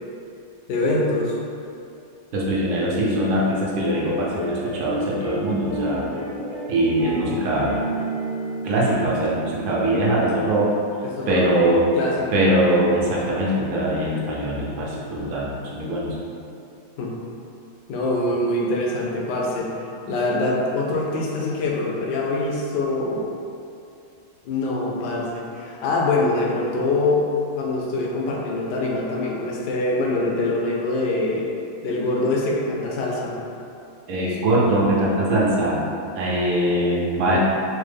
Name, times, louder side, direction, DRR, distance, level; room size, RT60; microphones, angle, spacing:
voice 1, 0.7-1.4 11.0-11.4 11.9-12.4 17.0-17.2 17.9-19.7 20.1-23.3 24.4-27.3 27.6-31.5 31.8-33.4 37.3-37.4, left 2 dB, 70° left, -2 dB, 1.1 m, -24 dB
voice 2, 2.3-6.1 6.7-7.8 8.6-10.7 11.3-11.9 12.3-16.1 34.1-35.8 36.1-37.4, right 1 dB, 80° right, -5 dB, 1.5 m, -22 dB
sound 1, 3.8-10.3, right 1 dB, 90° left, 2.3 m, -30 dB
5.2 x 2.0 x 3.3 m, 2.6 s
omnidirectional pair, 2.1 m